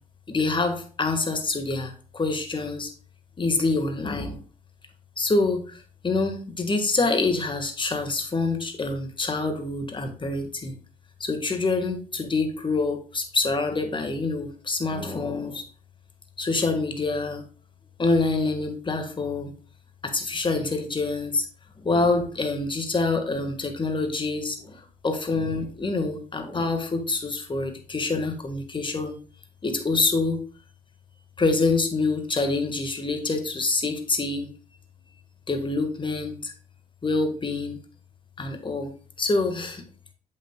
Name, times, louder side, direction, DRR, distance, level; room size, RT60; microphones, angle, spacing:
voice 1, 0.3-2.9 3.4-4.4 5.2-5.7 6.0-10.7 11.2-15.6 16.4-17.4 18.0-19.5 20.0-21.4 21.8-29.2 29.6-30.4 31.4-34.5 35.5-36.5 37.0-37.8 38.4-39.8, left 3 dB, 25° left, 6 dB, 1.6 m, -26 dB
8.4 x 7.3 x 2.3 m, 0.39 s
hypercardioid pair, 50°, 18 cm